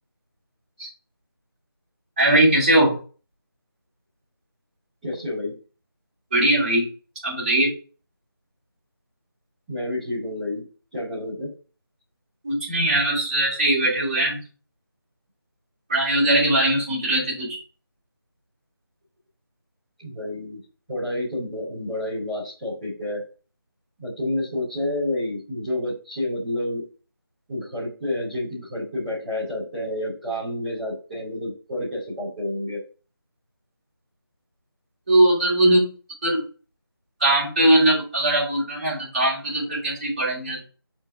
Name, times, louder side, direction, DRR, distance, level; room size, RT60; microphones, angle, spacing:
voice 1, 2.2-3.0 6.3-6.9 7.2-7.7 12.4-14.4 15.9-17.6 35.1-35.9 36.2-36.4 37.2-40.6, right 1 dB, 20° right, -8 dB, 2.9 m, -20 dB
voice 2, 5.0-5.6 9.7-10.6 10.9-11.5 20.0-20.6 20.9-23.2 24.0-26.8 27.5-32.8, left 1 dB, ahead, -24 dB, 0.8 m, -29 dB
5.8 x 4.6 x 3.6 m, 0.36 s
figure-of-eight pair, 180°, 12 cm